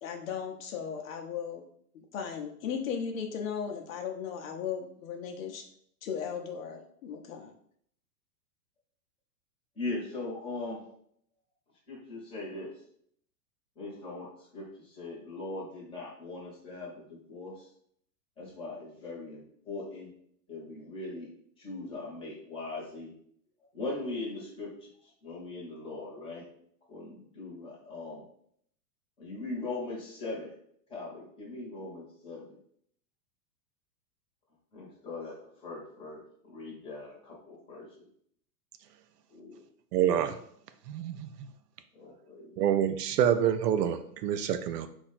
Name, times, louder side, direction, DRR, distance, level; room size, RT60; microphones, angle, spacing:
voice 1, 0.0-1.6 1.9-5.6 6.0-7.5, left 7 dB, 55° left, 3 dB, 0.8 m, -36 dB
voice 2, 9.7-10.8 11.9-12.7 13.7-17.7 18.4-20.1 20.5-21.3 21.6-23.1 23.7-26.5 26.9-28.2 29.2-30.5 30.9-32.6 34.7-37.9 39.3-39.6 41.9-42.6, left 2 dB, 10° left, -5 dB, 1.2 m, -40 dB
voice 3, 39.9-40.4 40.9-41.3 42.6-44.9, right 9 dB, 75° right, 10 dB, 0.6 m, -27 dB
4.3 x 2.6 x 4.2 m, 0.66 s
supercardioid pair, 160°, 48 cm